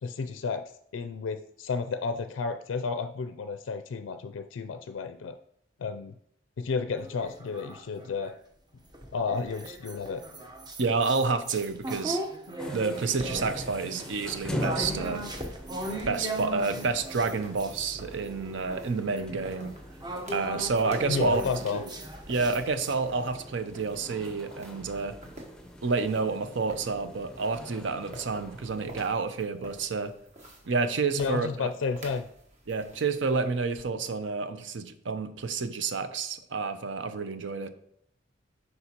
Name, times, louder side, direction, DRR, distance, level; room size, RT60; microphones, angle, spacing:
voice 1, 0.0-0.6 0.9-5.4 5.8-6.2 6.6-8.3 9.1-10.2 21.1-21.8 31.2-32.3, left 5 dB, 85° left, 8 dB, 0.4 m, -32 dB
sound 1, 7.0-8.4 8.9-17.8 18.2-22.9, right 1 dB, 20° right, 0.8 m, -38 dB
voice 2, 10.8-12.2 12.7-15.2 16.1-19.7 20.3-21.4 21.7-21.9 22.3-25.2 25.8-30.1 30.6-31.7 32.7-37.7, right 4 dB, 70° right, 10 dB, 0.6 m, -29 dB
sound 2, 12.6-29.1, equal, 5° left, 0.6 m, -42 dB
sound 3, 14.8-33.8, right 1 dB, 40° right, 1.4 m, -49 dB
8.0 x 5.4 x 2.9 m, 0.70 s
head